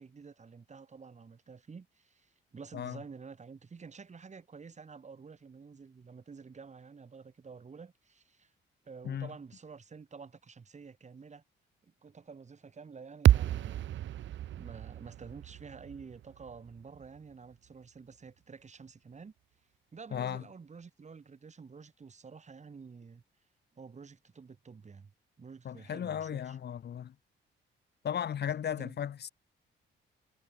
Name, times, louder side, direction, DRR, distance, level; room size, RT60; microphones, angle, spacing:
voice 1, 0.0-8.5 8.8-11.4 11.8-14.0 14.6-19.3 19.9-23.2 23.7-25.1 25.4-26.6 28.8-28.9, right 5 dB, 35° right, 5.1 m, -50 dB
sound 1, 13.2-17.5, right 12 dB, 75° right, 1.7 m, -30 dB
voice 2, 20.1-20.4 25.7-27.1 28.0-29.3, left 9 dB, 55° left, 1.8 m, -35 dB
cardioid pair, 90°, 20 cm